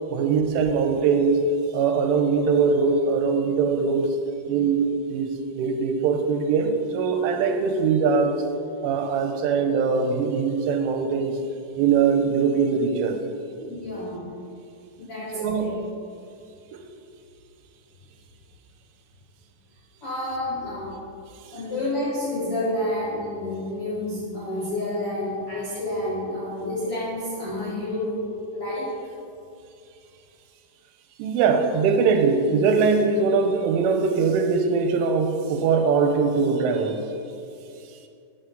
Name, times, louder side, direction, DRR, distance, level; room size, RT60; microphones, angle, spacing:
voice 1, 0.1-1.4 1.7-4.2 4.5-5.3 5.6-8.4 8.8-11.4 11.8-13.2 15.3-15.9 16.7-16.8 31.2-37.0, right 5 dB, 80° right, 5 dB, 3.2 m, -22 dB
voice 2, 13.6-14.3 15.0-15.7 20.0-21.0 21.5-28.9, left 1 dB, 90° left, -8 dB, 1.2 m, -29 dB
13.0 x 6.7 x 3.9 m, 2.5 s
omnidirectional pair, 5.6 m